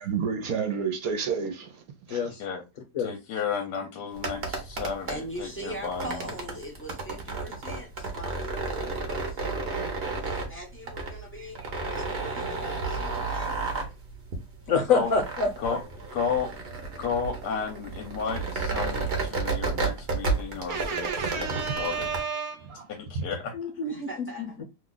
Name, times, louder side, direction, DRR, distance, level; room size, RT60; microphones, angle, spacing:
voice 1, 0.0-2.3 11.4-11.5 20.7-22.8 23.1-23.3, right 6 dB, 65° right, 1.1 m, -31 dB
voice 2, 2.1-2.4 2.9-3.1 14.7-15.8 23.5-24.1 24.4-24.6, left 5 dB, 60° left, 1.1 m, -26 dB
voice 3, 3.0-6.3 10.2-10.3 14.9-15.1 15.6-15.8 16.1-16.5 17.0-22.1 23.0-23.5, left 6 dB, 75° left, 1.2 m, -33 dB
sound 1, 4.1-22.2, right 3 dB, 45° right, 0.9 m, -32 dB
voice 4, 5.1-9.7 10.5-11.6 11.9-13.7 23.9-24.5, right 1 dB, 10° left, 0.6 m, -41 dB
2.9 x 2.4 x 3.7 m
omnidirectional pair, 1.8 m